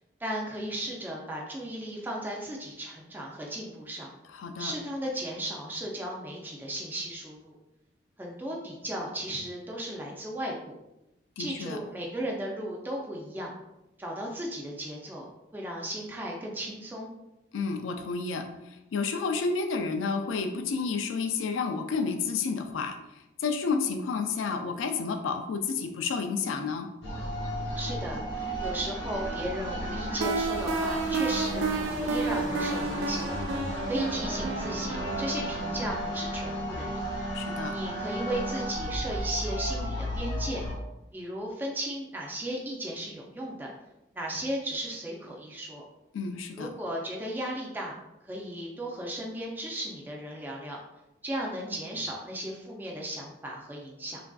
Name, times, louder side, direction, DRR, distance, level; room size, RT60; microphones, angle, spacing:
voice 1, 0.2-4.1 4.6-7.6 8.2-10.8 11.4-13.5 14.0-15.3 15.5-17.1 27.8-33.3 33.8-37.0 37.7-40.6 41.1-43.7 44.1-45.8 46.6-50.8 51.2-54.2, right 1 dB, 10° right, -2 dB, 0.3 m, -35 dB
voice 2, 4.3-4.7 11.4-11.8 17.5-23.0 23.4-26.9 37.3-37.7 46.1-46.7, left 5 dB, 90° left, 6 dB, 0.3 m, -30 dB
sound 1, 27.0-40.7, equal, 60° left, 0.8 m, -33 dB
sound 2, 30.2-37.0, right 4 dB, 85° right, 0.3 m, -32 dB
3.2 x 2.5 x 2.2 m, 0.93 s
head